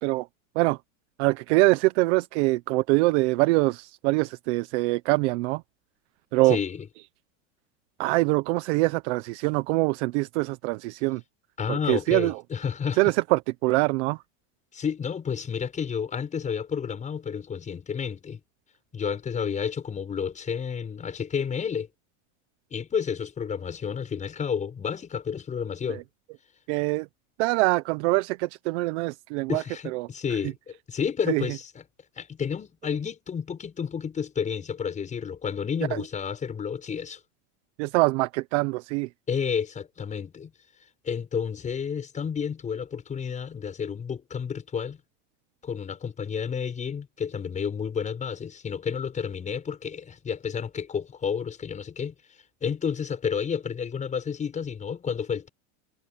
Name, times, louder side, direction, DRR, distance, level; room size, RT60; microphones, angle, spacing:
voice 1, 1.2-5.6 6.3-6.6 8.0-11.2 11.7-12.4 13.0-14.2 25.9-26.0 26.7-27.1 27.4-29.6 29.9-30.1 31.3-31.5 35.9-36.0 37.8-39.1, right 22 dB, 60° right, 0.9 m, -24 dB
voice 2, 6.5-6.9 11.6-13.1 14.7-18.4 18.9-21.9 22.7-26.0 29.5-31.8 32.2-37.2 39.3-40.5 41.0-45.0 45.6-52.1 52.6-55.5, left 7 dB, 20° left, 6.8 m, -31 dB
supercardioid pair, 165°, 39 cm